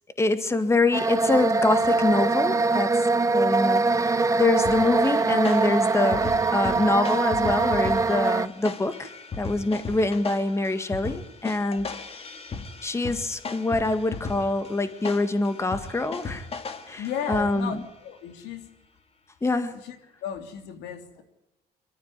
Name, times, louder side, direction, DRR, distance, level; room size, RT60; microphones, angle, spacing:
voice 1, 0.2-3.1 3.3-9.1 9.4-11.9 12.8-16.5 16.9-17.8 19.4-19.7, left 2 dB, 15° left, 9 dB, 1.8 m, -25 dB
sound 1, 0.9-8.5, right 3 dB, 20° right, 0.8 m, -23 dB
sound 2, 4.6-17.8, left 4 dB, 35° left, 2.2 m, -37 dB
voice 2, 17.0-18.7 19.5-20.0 20.2-21.2, left 8 dB, 85° left, 6 dB, 3.2 m, -35 dB
23.5 x 13.5 x 9.7 m, 0.97 s
cardioid pair, 110°, 17 cm